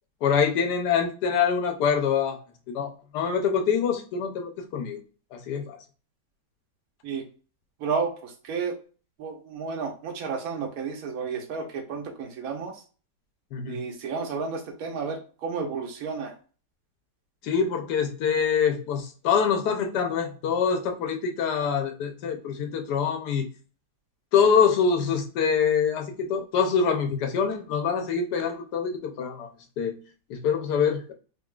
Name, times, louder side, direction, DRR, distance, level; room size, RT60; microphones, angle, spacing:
voice 1, 0.2-2.4 2.7-5.0 5.3-5.8 13.5-13.8 17.4-23.5 24.3-29.5 29.8-30.0 30.3-31.1, left 6 dB, 70° left, 5 dB, 1.3 m, -25 dB
voice 2, 7.8-8.7 9.2-12.8 13.7-16.3, right 5 dB, 60° right, 2 dB, 1.3 m, -32 dB
3.7 x 3.4 x 2.4 m, 0.37 s
omnidirectional pair, 1.9 m